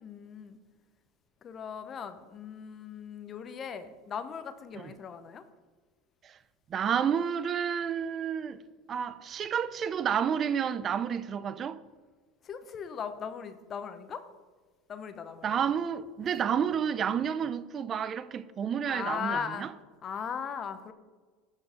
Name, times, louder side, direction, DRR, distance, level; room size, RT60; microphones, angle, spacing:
voice 1, 0.0-0.6 1.4-5.4 12.4-14.2 14.9-15.6 18.9-19.7 20.0-20.9, left 7 dB, 35° left, 0.8 m, -38 dB
voice 2, 6.7-8.6 8.9-11.8 15.4-19.7, right 8 dB, 35° right, 0.4 m, -30 dB
11.5 x 4.5 x 5.1 m
supercardioid pair, 105°, 0 cm